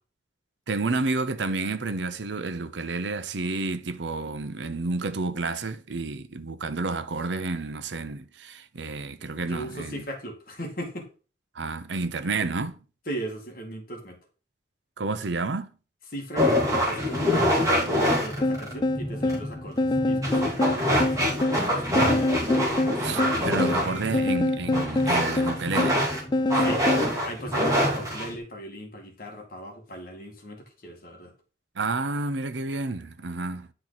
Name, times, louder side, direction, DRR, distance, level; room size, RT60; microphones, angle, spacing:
voice 1, 0.7-10.0 11.5-12.8 15.0-15.7 23.0-26.0 31.8-33.7, right 3 dB, 80° right, 0.8 m, -30 dB
voice 2, 9.3-11.1 13.1-14.2 16.1-24.2 26.5-26.8 27.2-31.3, right 1 dB, 55° left, 2.0 m, -38 dB
sound 1, 16.4-28.4, equal, 20° right, 2.6 m, -25 dB
sound 2, 18.4-27.1, left 2 dB, 25° left, 0.4 m, -26 dB
10.0 x 4.5 x 4.0 m
head